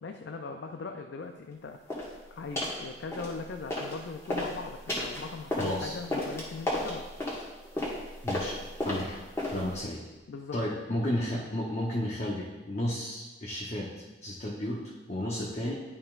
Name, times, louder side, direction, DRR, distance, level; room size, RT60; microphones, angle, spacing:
voice 1, 0.0-7.0 10.3-10.6, left 4 dB, 65° left, 5 dB, 0.4 m, -40 dB
sound 1, 1.9-2.1 2.6-2.8 3.1-4.0 4.2-9.8, left 1 dB, 15° left, 1.5 m, -33 dB
voice 2, 5.6-6.0 8.2-8.6 8.8-10.1 10.5-13.9 14.2-14.8 15.1-15.7, left 1 dB, 35° left, -4 dB, 0.8 m, -33 dB
10.5 x 5.4 x 2.4 m, 1.2 s
head